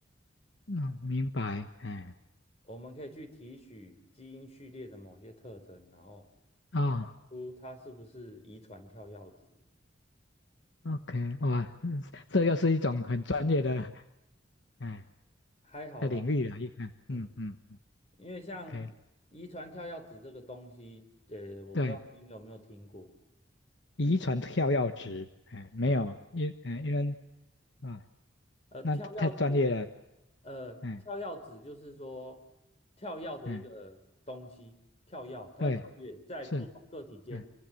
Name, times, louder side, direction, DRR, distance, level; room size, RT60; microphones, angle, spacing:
voice 1, 0.7-2.1 6.7-7.1 10.8-14.0 14.8-15.0 16.0-17.6 18.7-18.9 21.7-22.0 24.0-27.1 27.8-28.0 28.8-29.8 30.8-31.0 33.5-33.6 35.6-35.8 36.5-36.6 37.3-37.4, left 2 dB, 70° left, 9 dB, 1.2 m, -30 dB
voice 2, 2.6-6.2 7.3-9.3 15.6-16.2 17.1-17.3 18.2-18.8 19.3-23.1 25.8-26.0 28.7-29.6 30.4-30.8 31.0-32.4 33.0-34.0 34.3-34.8 35.1-37.5, left 1 dB, 35° left, 7 dB, 4.3 m, -44 dB
27.5 x 24.5 x 7.8 m, 0.90 s
head